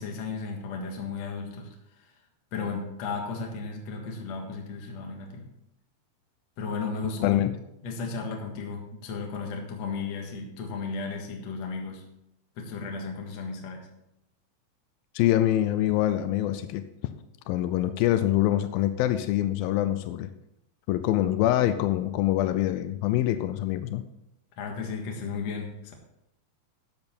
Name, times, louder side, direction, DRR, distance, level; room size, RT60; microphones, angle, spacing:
voice 1, 0.0-1.7 2.0-2.1 2.5-5.4 6.6-7.4 7.8-12.0 12.6-13.9 24.6-25.9, left 4 dB, 50° left, 1 dB, 2.2 m, -34 dB
voice 2, 15.2-16.8 17.5-20.3 20.9-24.0, left 13 dB, 85° left, 10 dB, 2.1 m, -25 dB
14.5 x 8.7 x 4.4 m, 0.84 s
omnidirectional pair, 4.8 m